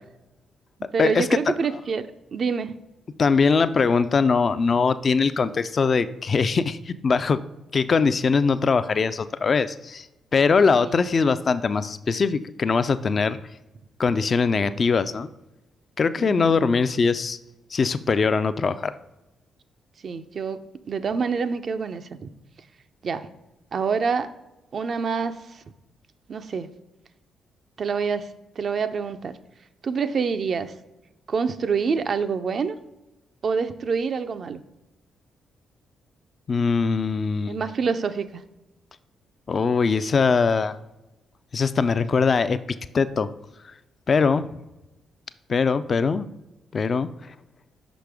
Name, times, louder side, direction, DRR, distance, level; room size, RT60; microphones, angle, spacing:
voice 1, 0.8-2.7 10.8-11.0 16.2-16.5 20.0-22.3 23.0-23.3 23.7-24.3 24.7-25.6 26.3-26.7 27.8-28.3 28.6-29.4 29.8-30.7 31.3-32.8 33.4-34.6 37.5-38.4, right 5 dB, 55° right, 10 dB, 0.4 m, -26 dB
voice 2, 3.2-7.4 7.7-10.1 10.3-13.4 14.0-15.3 16.0-17.4 17.7-18.9 36.5-37.6 39.5-40.8 41.5-42.6 42.9-43.3 44.1-44.5 45.5-46.3 46.7-47.1, left 5 dB, 50° left, 13 dB, 0.3 m, -21 dB
5.8 x 5.0 x 3.4 m, 0.99 s
hypercardioid pair, 45°, 0 cm